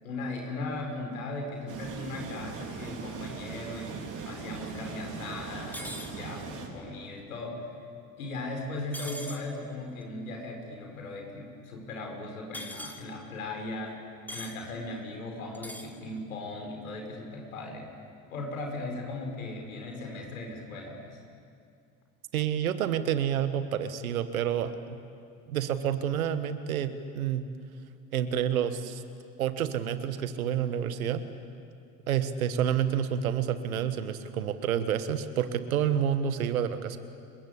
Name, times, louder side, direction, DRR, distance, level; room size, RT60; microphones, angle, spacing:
voice 1, 0.0-7.7 8.2-14.0 14.3-17.9 18.3-21.2, left 2 dB, 85° left, 2 dB, 5.5 m, -38 dB
sound 1, 1.7-6.7, right 5 dB, 50° right, 4.9 m, -40 dB
sound 2, 5.7-6.1 8.9-9.4 12.5-13.0 14.3-14.5 15.5-15.9, equal, 5° left, 3.9 m, -40 dB
voice 2, 22.3-24.7 25.5-26.9 27.1-27.4 28.1-29.0 29.4-31.2 32.1-37.0, right 9 dB, 85° right, 11 dB, 1.5 m, -28 dB
29.5 x 22.0 x 8.5 m, 2.4 s
hypercardioid pair, 65°, 41 cm